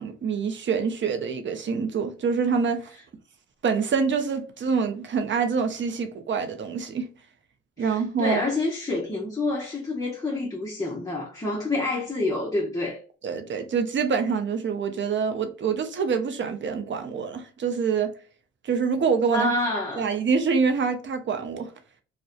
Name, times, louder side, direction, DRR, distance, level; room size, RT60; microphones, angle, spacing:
voice 1, 0.0-3.0 3.6-7.1 7.8-8.4 13.2-18.1 18.6-19.5 20.0-21.7, right 5 dB, 40° right, 0.6 m, -26 dB
voice 2, 7.8-13.0 19.3-20.0, left 2 dB, 10° left, 0.6 m, -28 dB
2.4 x 2.1 x 2.4 m
cardioid pair, 90°, 30 cm